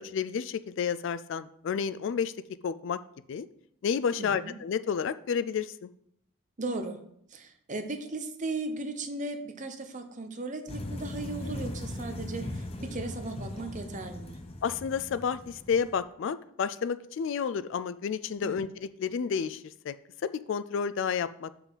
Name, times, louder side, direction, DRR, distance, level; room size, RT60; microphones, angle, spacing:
voice 1, 0.0-2.3 2.6-3.0 3.3-3.5 3.8-5.9 14.6-19.9 20.2-21.6, left 6 dB, 60° left, 14 dB, 0.3 m, -31 dB
voice 2, 4.2-4.5 6.6-7.0 7.3-14.4 18.4-18.6, right 2 dB, 35° right, 6 dB, 0.8 m, -36 dB
sound 1, 10.7-16.0, left 1 dB, 25° left, 0.6 m, -39 dB
7.8 x 5.7 x 4.1 m, 0.70 s
head